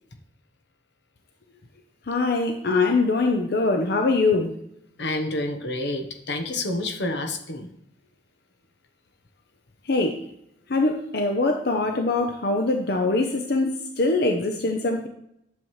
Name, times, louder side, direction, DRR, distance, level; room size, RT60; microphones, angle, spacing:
voice 1, 2.1-4.5 9.9-10.2 10.7-15.1, left 3 dB, 60° left, 4 dB, 0.7 m, -23 dB
voice 2, 5.0-7.7, left 2 dB, 80° left, 6 dB, 1.1 m, -28 dB
10.5 x 7.2 x 3.1 m, 0.76 s
head